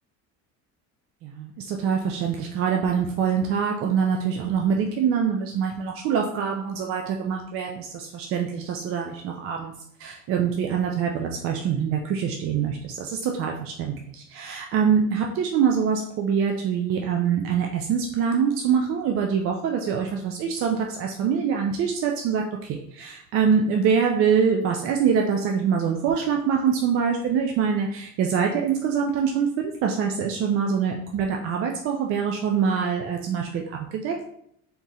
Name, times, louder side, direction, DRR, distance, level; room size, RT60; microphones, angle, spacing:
voice 1, 1.2-9.7 10.0-34.3, right 7 dB, 45° right, 2 dB, 0.4 m, -24 dB
3.7 x 2.9 x 4.1 m, 0.70 s
cardioid pair, 165°, 33 cm